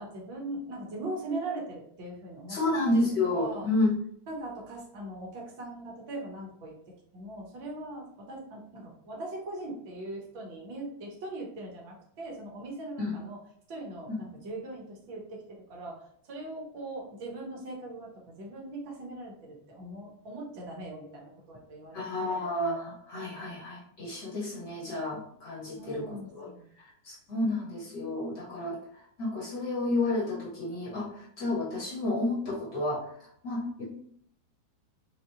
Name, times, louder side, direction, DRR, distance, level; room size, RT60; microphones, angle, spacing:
voice 1, 0.0-2.6 2.9-3.0 3.3-3.7 4.3-6.7 7.1-13.4 13.7-16.0 16.3-18.1 18.4-22.5 25.8-26.7, right 2 dB, 45° right, -2 dB, 0.7 m, -40 dB
voice 2, 2.5-3.9 13.0-13.1 14.1-14.2 21.9-26.5 27.0-28.8 29.2-31.1 31.4-33.0 33.4-33.8, left 2 dB, 40° left, -5 dB, 1.1 m, -30 dB
2.7 x 2.1 x 2.3 m, 0.65 s
figure-of-eight pair, 90°, 0 cm